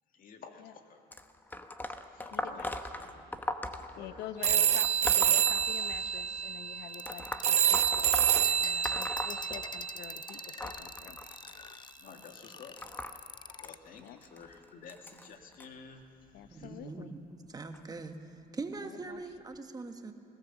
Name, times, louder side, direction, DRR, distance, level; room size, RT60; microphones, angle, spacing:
voice 1, 0.1-1.1 2.1-3.4 3.9-4.2 12.0-12.8 13.6-16.1 16.5-16.8, left 5 dB, 55° left, 4 dB, 2.0 m, -52 dB
sound 1, 1.1-6.2 7.0-10.0 10.3-15.6 16.4-16.7 17.7-17.8 18.7-18.8 19.5-19.6, left 1 dB, 10° left, 0.9 m, -40 dB
voice 2, 2.3-3.2 4.0-11.2 14.0-14.2 16.3-17.2 18.8-19.2, left 11 dB, 80° left, 12 dB, 0.8 m, -47 dB
sound 2, 4.4-10.5, right 9 dB, 40° right, 0.4 m, -28 dB
sound 3, 6.9-13.8, left 7 dB, 25° left, 0.4 m, -46 dB
voice 3, 16.5-17.2 17.5-18.2 18.5-20.1, right 3 dB, 20° right, 6 dB, 1.3 m, -41 dB
20.5 x 17.5 x 7.2 m, 2.7 s
cardioid pair, 110°, 17 cm